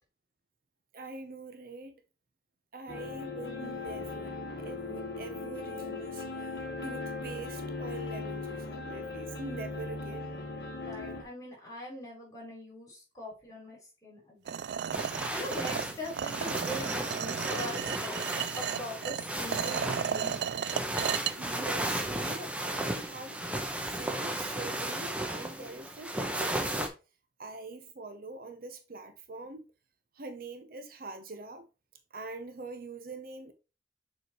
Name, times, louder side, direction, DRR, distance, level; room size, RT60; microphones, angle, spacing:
voice 1, 0.9-1.9 2.7-4.3 4.6-6.3 6.8-10.3 21.3-23.4 23.9-26.9 27.4-29.7 30.1-31.7 32.1-33.5, right 3 dB, 55° right, 0.9 m, -44 dB
sound 1, 2.9-11.2, left 3 dB, 65° left, 1.3 m, -38 dB
voice 2, 10.7-14.7 15.3-18.2 18.5-20.4, left 1 dB, 20° left, 4.2 m, -42 dB
sound 2, 14.5-21.3, right 8 dB, 70° right, 0.3 m, -34 dB
sound 3, 14.9-26.9, right 1 dB, 5° right, 0.9 m, -35 dB
6.8 x 4.9 x 3.1 m
head